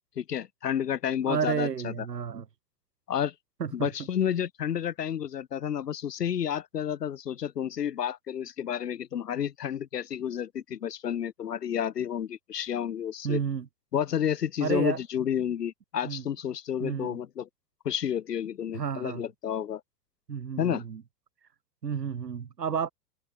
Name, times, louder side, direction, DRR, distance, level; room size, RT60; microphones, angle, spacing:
voice 1, 0.2-1.9 3.1-3.3 3.7-13.4 13.9-17.5 17.8-19.8 20.6-20.8, left 9 dB, 75° left, 1.1 m, -30 dB
voice 2, 1.3-2.4 3.6-3.9 13.2-13.7 14.6-15.0 16.0-16.3 16.8-17.2 18.7-19.2 20.3-21.0 21.8-22.9, right 7 dB, 85° right, 1.3 m, -31 dB
figure-of-eight pair, 100°, 48 cm